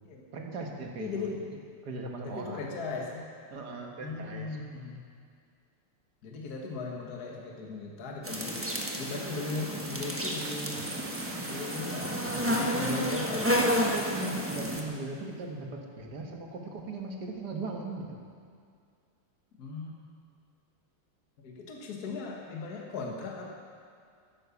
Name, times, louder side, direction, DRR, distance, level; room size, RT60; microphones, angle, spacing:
voice 1, 0.3-1.4 1.8-2.7 3.5-4.6 14.1-18.2, right 3 dB, 50° right, 1 dB, 1.8 m, -38 dB
voice 2, 1.0-1.4 2.2-3.2 4.0-5.0 6.2-8.7 9.0-10.8 11.5-13.7 19.6-19.9 21.4-23.5, left 3 dB, 50° left, -1 dB, 1.9 m, -38 dB
sound 1, 8.2-14.8, equal, 10° right, 0.6 m, -31 dB
sound 2, 10.4-14.2 14.4-14.8 15.2-15.6, right 4 dB, 85° right, 2.1 m, -48 dB
11.5 x 9.9 x 7.1 m, 2.2 s
omnidirectional pair, 2.4 m